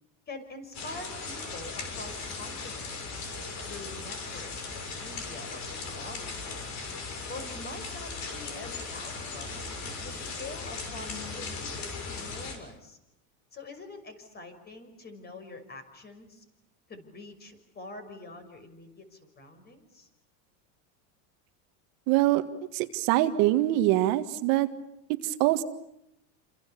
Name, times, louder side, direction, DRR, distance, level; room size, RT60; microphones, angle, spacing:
voice 1, 0.3-3.2 3.6-6.6 7.3-13.0 13.5-16.4 16.9-20.1, left 2 dB, 25° left, 8 dB, 6.1 m, -45 dB
sound 1, 0.7-12.6, left 4 dB, 45° left, 6.8 m, -38 dB
voice 2, 22.1-22.5 22.7-24.7 25.2-25.6, right 15 dB, 55° right, 8 dB, 1.9 m, -24 dB
29.0 x 27.5 x 7.0 m, 0.80 s
supercardioid pair, 140°, 40 cm